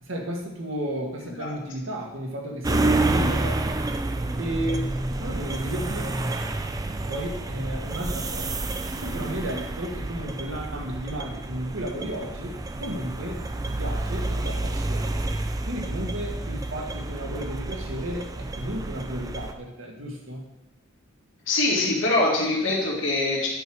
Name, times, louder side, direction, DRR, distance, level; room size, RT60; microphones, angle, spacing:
voice 1, 0.0-3.8 4.4-4.9 5.2-6.2 6.9-8.6 9.0-15.1 15.7-20.4, right 1 dB, 80° right, 1 dB, 1.8 m, -33 dB
sound 1, 2.6-19.5, right 2 dB, 20° right, 0.4 m, -29 dB
voice 2, 21.5-23.5, left 2 dB, 70° left, -5 dB, 2.2 m, -23 dB
9.8 x 4.7 x 6.2 m, 0.95 s
head